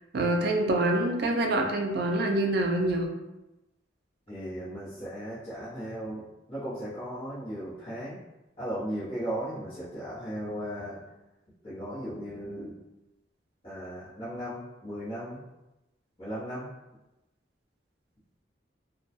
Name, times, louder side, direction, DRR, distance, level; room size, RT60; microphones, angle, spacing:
voice 1, 0.1-3.1, right 1 dB, 60° right, 2 dB, 0.4 m, -26 dB
voice 2, 4.3-6.2 6.5-8.2 8.6-11.0 11.6-12.7 13.6-15.4 16.2-16.7, equal, 30° left, -14 dB, 0.9 m, -36 dB
2.2 x 2.2 x 2.6 m, 0.98 s
head